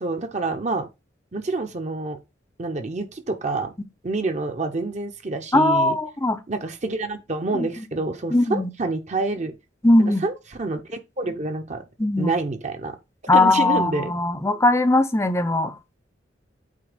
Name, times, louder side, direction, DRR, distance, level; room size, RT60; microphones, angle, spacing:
voice 1, 0.0-0.9 1.3-2.2 2.6-3.7 4.0-6.0 6.5-9.6 10.0-10.3 10.6-11.8 12.2-13.0 13.3-14.1, right 3 dB, 40° right, 0.8 m, -27 dB
voice 2, 5.5-6.4 7.5-7.7 8.3-8.7 9.8-10.3 12.0-12.3 13.3-15.8, left 2 dB, 15° left, 0.6 m, -19 dB
8.4 x 2.8 x 5.1 m
head